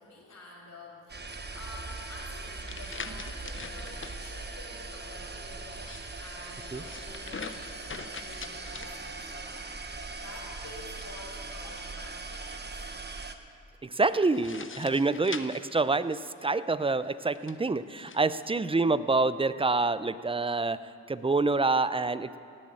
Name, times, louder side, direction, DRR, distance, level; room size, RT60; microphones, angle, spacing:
voice 1, 0.0-12.9, left 2 dB, 65° left, -8 dB, 2.9 m, -49 dB
sound 1, 1.1-13.4, right 3 dB, 30° right, 1.2 m, -40 dB
sound 2, 2.2-4.2 5.6-9.5 10.9-12.2 14.1-16.5 17.2-18.2, left 5 dB, 40° left, 0.9 m, -44 dB
voice 2, 13.8-22.4, right 3 dB, 15° right, 15 dB, 0.6 m, -27 dB
17.0 x 7.5 x 8.9 m, 2.4 s
supercardioid pair, 45°, 32 cm